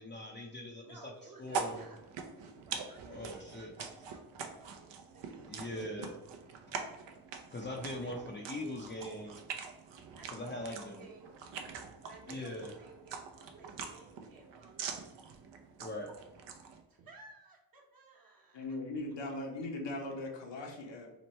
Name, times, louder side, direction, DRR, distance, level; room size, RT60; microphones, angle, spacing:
voice 1, 0.0-1.1 1.4-1.8 3.1-3.7 5.5-6.1 7.5-9.4 10.3-11.1 12.3-12.7 15.8-16.1, left 1 dB, 25° left, -1 dB, 0.5 m, -41 dB
voice 2, 0.8-2.0 2.6-6.2 7.9-8.8 10.1-11.4 11.9-15.1 16.9-18.8, right 3 dB, 45° right, -1 dB, 1.1 m, -56 dB
sound 1, 1.4-16.8, right 5 dB, 65° right, 0.7 m, -44 dB
voice 3, 18.5-21.1, left 2 dB, 65° left, 1 dB, 0.9 m, -39 dB
3.1 x 2.1 x 4.1 m, 0.92 s
cardioid pair, 60°, 47 cm